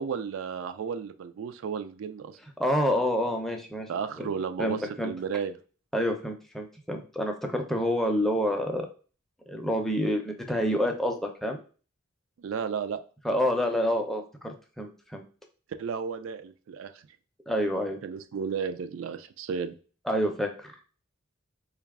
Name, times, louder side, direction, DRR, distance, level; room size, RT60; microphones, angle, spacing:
voice 1, 0.0-2.4 3.9-5.6 12.4-13.0 15.8-17.0 18.0-19.8, right 6 dB, 70° right, 10 dB, 0.3 m, -33 dB
voice 2, 2.6-3.9 4.2-4.3 4.6-5.1 5.9-8.9 9.5-11.6 13.2-15.2 17.5-18.0 20.1-20.8, equal, ahead, 3 dB, 0.5 m, -28 dB
3.8 x 2.3 x 3.5 m, 0.37 s
head